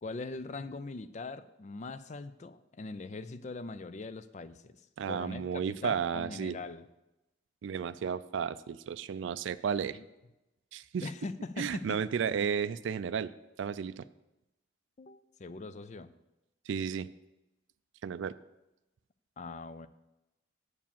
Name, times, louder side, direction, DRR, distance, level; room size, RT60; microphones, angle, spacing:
voice 1, 0.0-6.9 9.9-10.1 11.0-12.0 15.0-16.1 19.4-19.9, left 3 dB, 35° left, 13 dB, 0.3 m, -41 dB
voice 2, 5.0-6.6 7.6-10.0 10.7-11.1 11.6-13.3 13.6-14.0 16.7-17.1 18.0-18.3, right 7 dB, 70° right, 14 dB, 0.3 m, -33 dB
8.2 x 4.9 x 7.3 m, 0.96 s
head